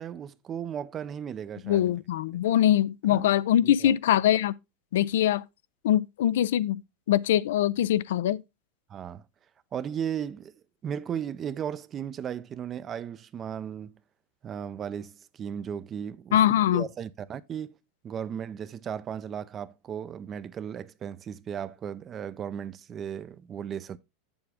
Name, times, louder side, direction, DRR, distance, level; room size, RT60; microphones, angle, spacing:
voice 1, 0.0-1.9 3.1-3.3 3.6-3.9 8.9-9.2 9.7-10.5 10.8-14.0 14.4-16.4 16.7-17.7 18.0-24.0, right 8 dB, 30° right, 0.4 m, -36 dB
voice 2, 1.6-4.5 4.9-5.4 5.8-6.8 7.1-8.4 16.3-16.9, left 11 dB, 85° left, 0.4 m, -23 dB
7.7 x 7.0 x 3.5 m
supercardioid pair, 135°, 0 cm